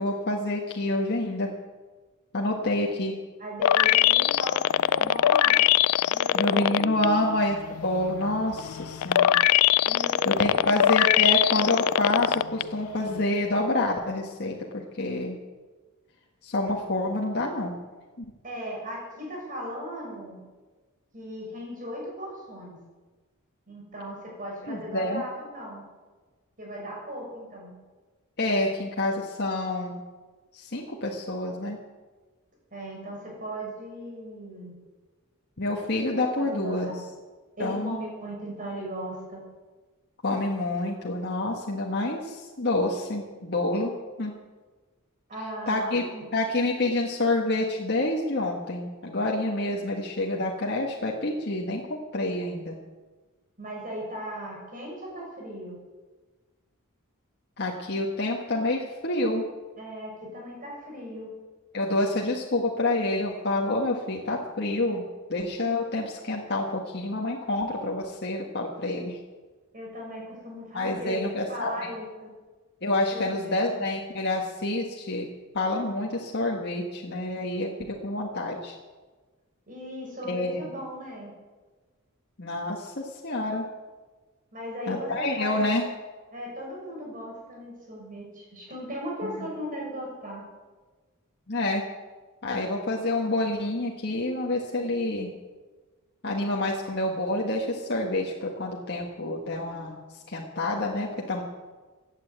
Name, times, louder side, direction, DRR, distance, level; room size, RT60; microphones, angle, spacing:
voice 1, 0.0-1.5 2.3-3.1 6.3-7.6 7.8-9.4 9.7-9.9 10.2-15.4 16.4-17.7 24.6-25.2 28.4-30.0 30.5-31.8 35.6-36.9 37.6-38.0 40.2-43.9 44.2-44.3 45.7-52.8 57.6-59.5 61.7-65.0 65.3-69.2 70.7-71.9 72.8-75.3 75.5-78.8 80.2-80.6 82.4-83.6 84.9-85.8 89.2-89.5 91.5-91.8 92.4-95.3 96.2-100.0 100.3-101.4, left 2 dB, 50° left, -1 dB, 1.7 m, -28 dB
voice 2, 3.4-5.7 6.1-7.2 9.8-10.6 11.5-11.6 18.4-20.4 21.1-22.8 23.7-25.8 26.6-27.7 32.7-34.7 36.4-36.9 37.6-39.4 45.3-46.2 53.6-55.8 59.8-61.3 69.7-72.3 73.1-73.9 79.7-81.3 84.5-85.6 86.3-90.4, equal, 40° right, -2 dB, 7.0 m, -37 dB
sound 1, 3.6-7.1 7.5-12.6 13.1-13.2, left 11 dB, 90° left, 0.4 m, -21 dB
17.0 x 9.8 x 8.1 m, 1.3 s
head